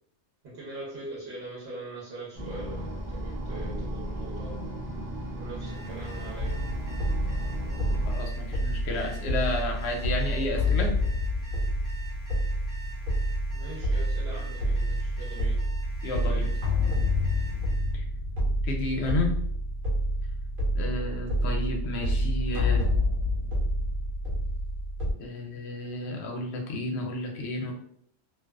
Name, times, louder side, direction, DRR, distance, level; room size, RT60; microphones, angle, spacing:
voice 1, 0.4-4.7 5.4-6.6 13.5-15.7 16.1-16.6, right 2 dB, 55° right, -6 dB, 1.0 m, -42 dB
sound 1, 2.3-8.1, equal, 20° right, 0.6 m, -35 dB
Alarm, 5.5-18.0, right 2 dB, 30° left, 0.6 m, -47 dB
sound 2, 6.4-25.1, equal, 85° right, 1.2 m, -28 dB
voice 2, 8.0-10.9 16.0-16.5 17.9-18.0 18.6-19.4 20.7-22.9 25.2-27.7, left 2 dB, 65° left, 2 dB, 0.7 m, -32 dB
2.4 x 2.3 x 2.2 m, 0.65 s
omnidirectional pair, 1.4 m